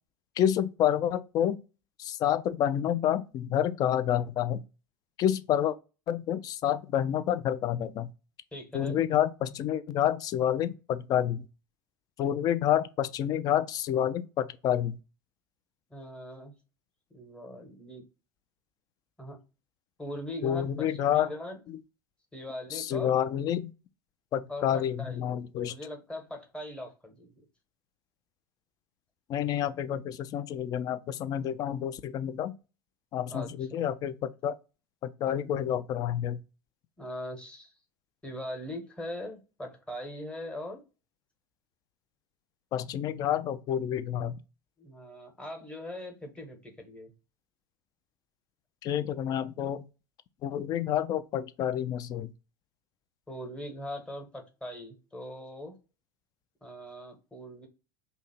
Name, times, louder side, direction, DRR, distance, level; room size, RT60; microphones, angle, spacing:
voice 1, 0.4-1.6 2.0-4.6 5.2-5.8 6.1-8.1 8.7-11.5 12.2-15.0 20.4-21.3 21.7-21.8 22.7-23.7 24.3-25.8 29.3-32.5 33.1-34.6 35.0-36.4 42.7-44.4 48.8-49.8 50.4-52.3, left 10 dB, 35° left, 0.3 m, -29 dB
voice 2, 8.5-9.0 15.9-16.5 17.1-18.0 19.2-19.4 20.0-21.6 22.3-23.2 24.5-25.3 25.6-27.3 33.3-33.9 37.0-37.8 38.2-40.8 44.8-47.1 53.3-55.8 56.6-57.7, left 1 dB, 10° left, 1.1 m, -41 dB
2.7 x 2.6 x 4.3 m
figure-of-eight pair, 75°, 11 cm